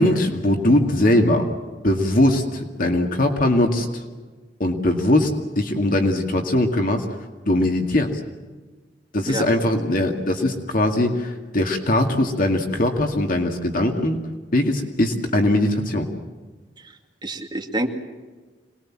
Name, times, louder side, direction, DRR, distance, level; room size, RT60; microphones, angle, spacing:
voice 1, 0.0-1.5 1.8-4.0 4.6-7.1 7.5-8.2 9.1-14.2 14.5-16.1, left 1 dB, 50° left, 3 dB, 2.2 m, -20 dB
voice 2, 17.2-17.9, right 1 dB, 25° right, 2 dB, 2.3 m, -27 dB
26.5 x 20.0 x 7.5 m, 1.3 s
head